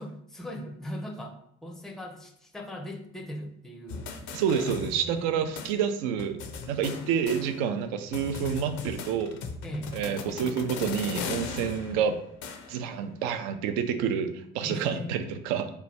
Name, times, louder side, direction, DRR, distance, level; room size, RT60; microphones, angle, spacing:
voice 1, 0.0-4.1 4.8-5.5 9.6-9.9 14.6-15.2, equal, ahead, 3 dB, 0.5 m, -39 dB
sound 1, 3.9-5.3 5.6-5.7 6.2-7.8 8.1-12.9, left 5 dB, 55° left, 0.6 m, -38 dB
voice 2, 4.3-6.4 6.7-9.4 9.9-12.2 12.7-15.7, right 7 dB, 65° right, 9 dB, 0.5 m, -28 dB
3.1 x 2.3 x 4.1 m, 0.70 s
figure-of-eight pair, 55°, 32 cm